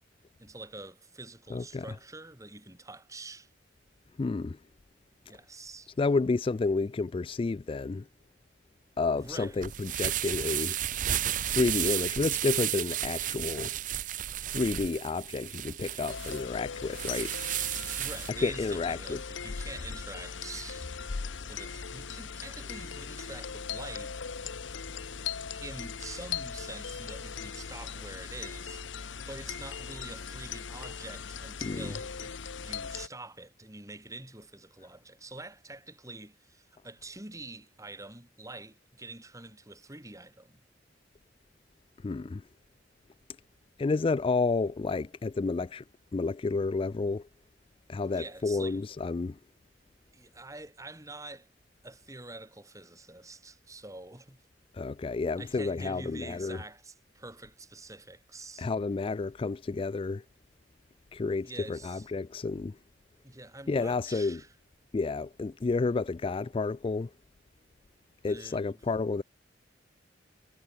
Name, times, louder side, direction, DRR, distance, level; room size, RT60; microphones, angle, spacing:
voice 1, 0.4-3.5 5.3-5.9 9.1-9.6 18.0-21.0 21.5-24.2 25.6-40.6 48.0-48.8 50.1-51.5 51.8-54.4 55.4-58.7 61.4-62.1 63.2-64.5 68.3-68.8, right 2 dB, 15° right, 4.5 m, -46 dB
voice 2, 1.5-1.8 4.2-4.6 6.0-8.1 9.0-10.8 11.4-13.8 14.5-17.3 18.4-19.2 31.6-31.9 42.0-42.4 43.8-45.8 46.1-47.3 47.9-49.4 54.7-56.6 58.6-60.2 61.1-62.8 63.7-64.4 64.9-67.1 68.2-69.2, left 3 dB, 30° left, 0.3 m, -30 dB
sound 1, 9.3-18.3, right 12 dB, 45° right, 0.6 m, -33 dB
sound 2, 16.1-33.1, left 6 dB, 85° left, 1.0 m, -39 dB
head